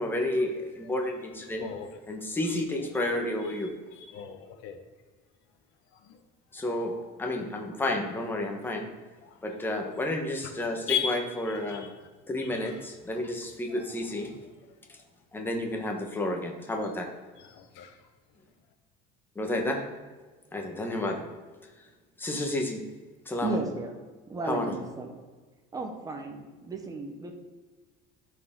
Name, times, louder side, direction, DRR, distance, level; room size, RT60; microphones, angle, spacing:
voice 1, 0.0-1.6 2.1-3.7 6.5-8.9 9.4-11.9 12.3-14.3 14.9-15.0 15.3-17.1 19.3-19.8 20.5-21.2 22.2-22.8 23.3-23.6 24.5-24.8, left 1 dB, 10° left, 2 dB, 1.1 m, -31 dB
voice 2, 4.0-4.8 5.9-6.2 6.6-7.0 9.2-9.4 10.9-11.9 12.4-12.8 13.7-14.3 17.4-18.0, left 7 dB, 70° left, 7 dB, 1.1 m, -37 dB
voice 3, 23.4-23.9 24.3-25.2 25.7-27.3, right 3 dB, 20° right, 4 dB, 0.9 m, -34 dB
13.0 x 4.8 x 3.7 m, 1.3 s
cardioid pair, 160°, 20 cm